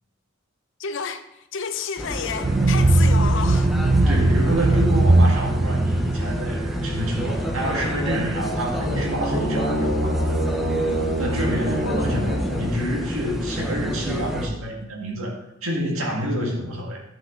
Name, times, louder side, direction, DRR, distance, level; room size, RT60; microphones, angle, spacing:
voice 1, 0.8-3.7 11.9-12.0, left 6 dB, 60° left, 0.6 m, -30 dB
sound 1, 2.0-14.5, equal, ahead, 0.8 m, -30 dB
sound 2, 2.4-8.4, right 2 dB, 35° right, 0.5 m, -20 dB
voice 2, 4.1-10.6 11.2-17.0, equal, 80° right, 2.0 m, -28 dB
sound 3, 8.6-13.3, equal, 55° right, 2.6 m, -26 dB
11.0 x 5.7 x 3.8 m
head